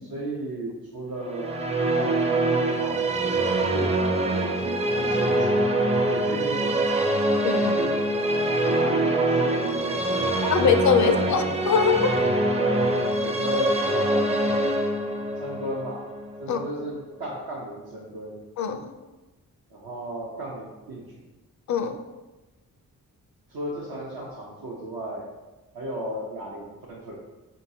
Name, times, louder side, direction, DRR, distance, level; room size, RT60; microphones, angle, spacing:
voice 1, 0.0-1.6 1.9-3.1 3.6-7.3 7.5-8.0 8.6-10.7 11.0-11.6 12.5-12.9 13.2-14.7 15.4-16.1 16.4-18.4 19.7-21.1 23.5-25.3 25.7-27.2, right 1 dB, 70° right, -5 dB, 0.8 m, -35 dB
Musical instrument, 1.2-16.7, right 1 dB, 15° right, 0.5 m, -24 dB
voice 2, 7.4-7.7 10.5-12.2 16.5-16.6 18.6-18.9 21.7-22.0, left 6 dB, 50° left, 8 dB, 0.4 m, -22 dB
4.7 x 2.9 x 2.7 m, 1.1 s
supercardioid pair, 50°, 37 cm